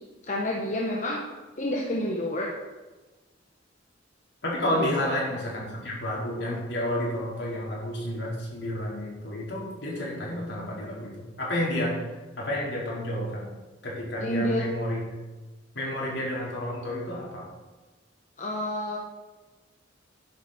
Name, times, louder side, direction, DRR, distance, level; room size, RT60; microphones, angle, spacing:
voice 1, 0.3-1.2 1.6-2.5 4.8-4.9 14.2-14.6 18.4-19.0, left 1 dB, 40° left, -2 dB, 1.4 m, -29 dB
voice 2, 4.4-12.0 12.4-13.5 13.8-15.1 15.7-17.5, left 1 dB, 65° left, -4 dB, 4.5 m, -30 dB
12.0 x 10.5 x 4.5 m, 1.2 s
head